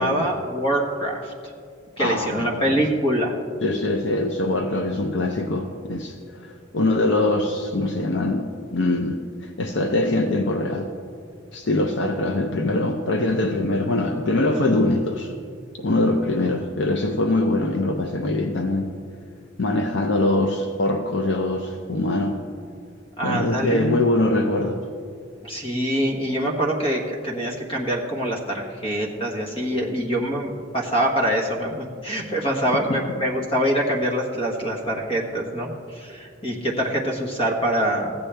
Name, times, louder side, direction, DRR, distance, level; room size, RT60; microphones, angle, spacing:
voice 1, 0.0-1.3 2.0-3.3 23.2-24.0 25.4-38.1, right 1 dB, 30° left, 1 dB, 1.3 m, -24 dB
voice 2, 2.0-2.8 3.6-10.9 11.5-15.3 15.8-19.0 19.6-22.4 23.2-24.8 32.9-33.0, left 2 dB, 65° left, 4 dB, 0.6 m, -23 dB
15.0 x 8.7 x 3.4 m, 2.2 s
head